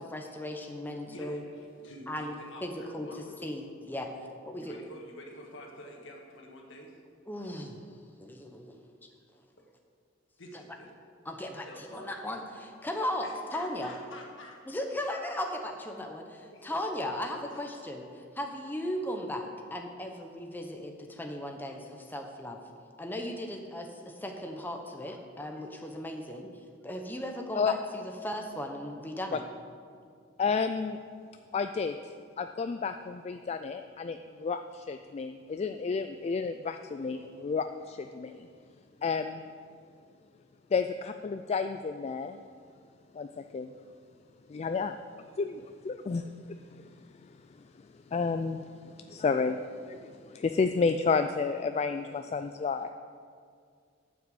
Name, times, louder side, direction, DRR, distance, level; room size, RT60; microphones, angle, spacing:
voice 1, 0.1-1.4 2.1-2.3 2.6-3.1 3.4-4.1 4.5-4.7 7.3-7.8 8.2-8.7 11.3-13.3 13.5-13.9 14.7-22.6 23.0-26.5 26.8-29.4, left 1 dB, 10° left, 3 dB, 0.8 m, -37 dB
voice 2, 1.1-3.5 4.1-4.3 4.6-7.0 10.4-10.9 11.7-12.1 13.2-14.7 16.5-16.7 17.5-17.6, left 1 dB, 65° left, 0 dB, 1.8 m, -48 dB
voice 3, 30.4-31.0 31.5-31.9 32.4-38.5 39.0-39.4 40.7-42.4 43.1-43.7 44.5-44.9 45.4-46.3 46.7-46.8 48.1-52.9, left 5 dB, 35° left, 8 dB, 0.3 m, -31 dB
11.5 x 6.0 x 7.8 m, 2.2 s
head